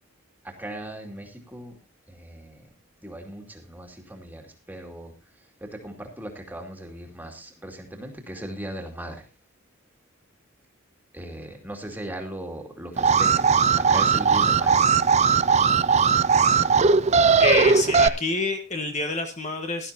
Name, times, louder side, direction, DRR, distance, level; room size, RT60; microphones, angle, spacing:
voice 1, 0.4-1.7 2.1-2.7 3.0-5.1 5.6-9.3 11.1-14.9, right 1 dB, 10° right, 2 dB, 2.3 m, -38 dB
Alarm, 13.0-18.1, right 5 dB, 30° right, 0.5 m, -19 dB
voice 2, 17.4-19.9, left 3 dB, 35° left, 5 dB, 1.5 m, -27 dB
17.0 x 12.0 x 2.8 m, 0.28 s
head